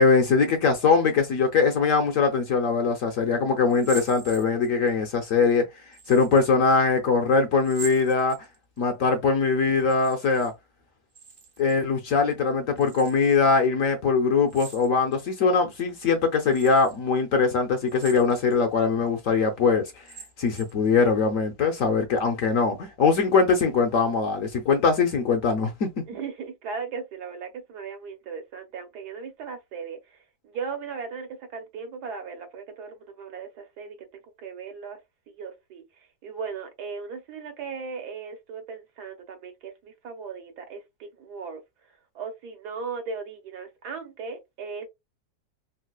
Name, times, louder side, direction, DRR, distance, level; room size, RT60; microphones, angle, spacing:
voice 1, 0.0-5.6 6.1-8.4 8.8-10.5 11.6-20.0 20.4-25.9, left 4 dB, 65° left, 0.9 m, -22 dB
sound 1, 3.7-4.9 5.9-6.5 7.6-8.8 9.8-10.5 10.8-11.8 12.8-13.4 14.5-15.3 15.8-15.9 16.5-17.0 17.8-18.6 19.1-19.2 19.9-20.9, right 5 dB, 40° right, 0.6 m, -43 dB
voice 2, 26.1-34.1 34.4-35.0 35.3-41.6 42.1-44.9, right 5 dB, 70° right, 1.3 m, -37 dB
3.9 x 2.2 x 2.3 m
omnidirectional pair, 1.8 m